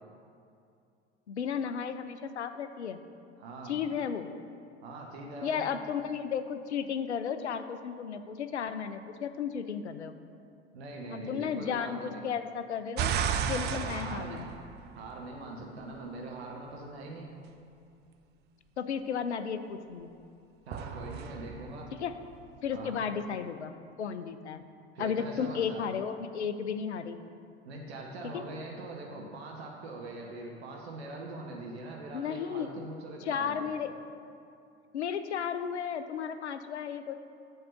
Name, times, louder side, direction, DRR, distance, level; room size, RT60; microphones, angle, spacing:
voice 1, 1.3-3.0 3.6-4.3 5.4-10.2 11.3-13.1 13.5-14.5 18.8-20.1 22.0-22.1 22.6-23.7 24.0-24.6 25.0-27.2 28.3-28.4 32.1-32.8 33.2-33.9 34.9-37.1, left 7 dB, 85° left, 10 dB, 0.5 m, -34 dB
voice 2, 3.4-3.8 4.8-5.7 10.7-12.2 13.7-14.4 14.9-17.3 20.7-21.9 22.7-23.0 24.9-25.9 27.6-33.6, right 2 dB, 70° right, -1 dB, 0.9 m, -42 dB
sound 1, 13.0-15.4 20.7-22.8, right 8 dB, 30° right, 0.4 m, -34 dB
7.8 x 3.6 x 6.6 m, 2.5 s
figure-of-eight pair, 70°, 33 cm